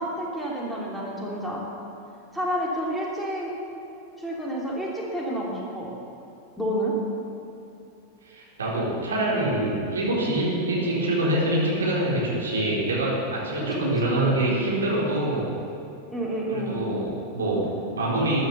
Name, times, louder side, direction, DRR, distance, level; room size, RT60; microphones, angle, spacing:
voice 1, 0.0-1.6 2.3-3.5 4.2-5.9 6.6-6.9 13.6-14.4 16.1-16.8, equal, ahead, -5 dB, 3.2 m, -29 dB
voice 2, 8.3-15.5 16.5-18.5, right 1 dB, 70° right, -5 dB, 4.0 m, -25 dB
13.5 x 11.5 x 7.1 m, 2.7 s
figure-of-eight pair, 90°, 0 cm